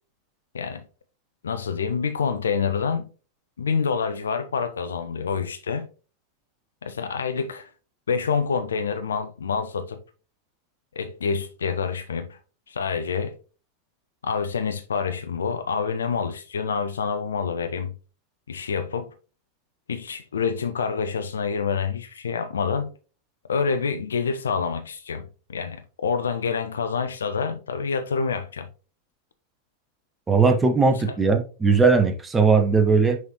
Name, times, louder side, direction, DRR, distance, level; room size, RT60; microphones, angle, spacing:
voice 1, 1.4-3.1 3.6-5.9 6.8-7.7 8.1-10.0 11.0-12.4 12.7-13.4 14.2-17.9 18.5-19.1 19.9-22.9 23.5-28.7 30.9-31.2, left 5 dB, 70° left, 0.4 m, -27 dB
voice 2, 30.3-33.2, right 4 dB, 15° right, 0.8 m, -19 dB
6.3 x 5.2 x 3.0 m
figure-of-eight pair, 90°, 0 cm